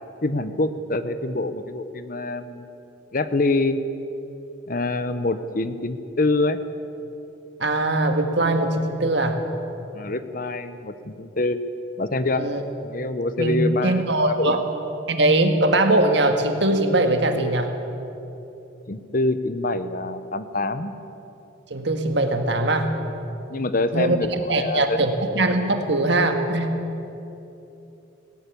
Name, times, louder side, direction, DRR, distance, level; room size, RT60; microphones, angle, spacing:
voice 1, 0.2-2.7 3.1-3.8 4.7-6.6 9.9-11.6 12.0-12.5 12.8-14.6 18.9-20.9 23.5-25.0, left 2 dB, 45° left, 11 dB, 0.9 m, -25 dB
voice 2, 7.6-9.4 12.4-12.6 13.4-14.6 15.1-17.7 21.7-23.0 23.9-26.8, right 2 dB, 60° right, 5 dB, 1.8 m, -21 dB
18.5 x 17.0 x 8.5 m, 3.0 s
head